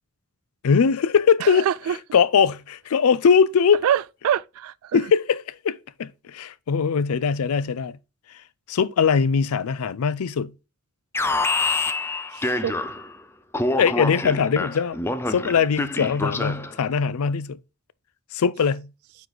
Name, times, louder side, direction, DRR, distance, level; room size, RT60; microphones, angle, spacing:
voice 1, 0.6-1.7 2.1-3.8 4.9-8.0 8.7-10.5 13.8-15.0 15.3-17.6 18.3-18.9, left 6 dB, 85° left, 0.4 m, -21 dB
voice 2, 1.4-2.0 3.8-5.0 12.3-12.7, right 9 dB, 75° right, 0.3 m, -25 dB
Alarm, 11.1-13.2 13.5-16.8, left 2 dB, 10° left, 0.3 m, -26 dB
9.4 x 3.2 x 3.8 m
head